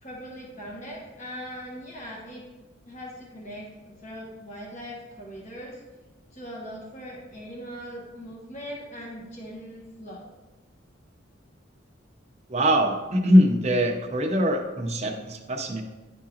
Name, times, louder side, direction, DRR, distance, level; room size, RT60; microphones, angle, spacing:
voice 1, 0.0-2.4 2.8-5.8 6.3-10.3, equal, 40° left, -4 dB, 1.4 m, -40 dB
voice 2, 12.5-15.8, equal, 35° right, 2 dB, 0.7 m, -22 dB
11.0 x 3.7 x 2.8 m, 1.1 s
head